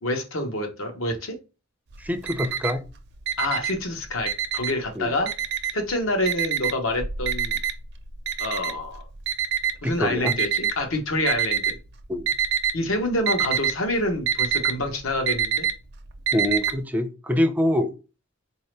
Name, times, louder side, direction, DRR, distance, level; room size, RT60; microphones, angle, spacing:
voice 1, 0.0-1.4 3.4-5.3 5.7-7.6 8.4-9.0 9.8-11.7 12.7-15.7, left 1 dB, 85° left, 1.0 m, -27 dB
Alarm, 1.9-2.9 3.2-4.9 5.3-5.9 6.3-10.7 11.3-11.9 12.1-12.8 13.0-16.7, right 8 dB, 60° right, 0.5 m, -25 dB
voice 2, 2.0-2.8 5.0-5.1 9.8-10.3 12.1-12.2 16.3-17.9, left 1 dB, 10° right, 0.4 m, -24 dB
4.1 x 2.7 x 3.2 m
head